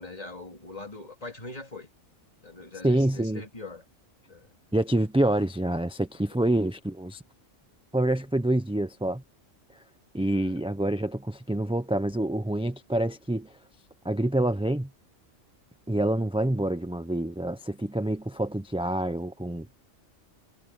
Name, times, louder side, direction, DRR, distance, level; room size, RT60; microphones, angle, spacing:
voice 1, 0.0-1.9 2.4-3.8 4.3-4.5 6.3-6.6 10.3-10.6, left 2 dB, 30° left, 3.0 m, -42 dB
voice 2, 2.8-3.4 4.7-7.2 7.9-9.2 10.1-13.5 14.0-14.9 15.9-19.7, right 1 dB, 5° right, 0.6 m, -27 dB
omnidirectional pair, 1.3 m